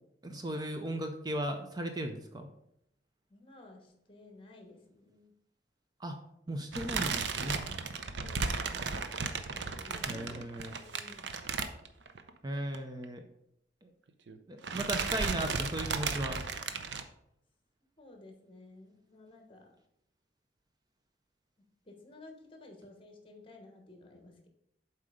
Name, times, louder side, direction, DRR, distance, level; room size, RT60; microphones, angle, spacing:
voice 1, 0.2-2.5 6.0-6.2 6.5-7.6 10.1-10.7 12.4-13.2 13.8-13.9 14.5-16.4, right 1 dB, 25° right, 6 dB, 0.5 m, -36 dB
voice 2, 3.3-5.3 8.2-9.0 9.4-11.2 18.0-19.7 21.8-24.5, left 2 dB, 30° left, 3 dB, 1.3 m, -54 dB
sound 1, 6.7-12.3 12.6-12.8 13.0-13.1 14.1-14.4 14.6-17.0, right 5 dB, 80° right, 0.6 m, -35 dB
7.5 x 4.3 x 5.0 m, 0.79 s
head